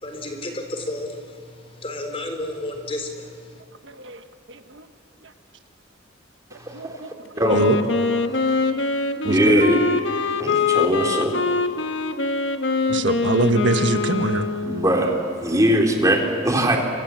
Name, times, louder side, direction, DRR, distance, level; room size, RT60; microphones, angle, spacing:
voice 1, 0.0-1.1 1.8-3.1, left 1 dB, 30° left, 4 dB, 4.0 m, -30 dB
voice 2, 3.8-4.9 5.2-5.3 6.5-7.1 7.5-7.8 9.2-9.7 12.9-14.5, right 2 dB, 70° right, 7 dB, 1.4 m, -24 dB
Wind instrument woodwind instrument, 7.4-15.2, left 4 dB, 75° left, 1.4 m, -24 dB
voice 3, 9.2-9.8 10.4-11.4 14.7-16.8, right 1 dB, 20° right, 1 dB, 3.4 m, -20 dB
28.5 x 25.0 x 7.6 m, 2.4 s
head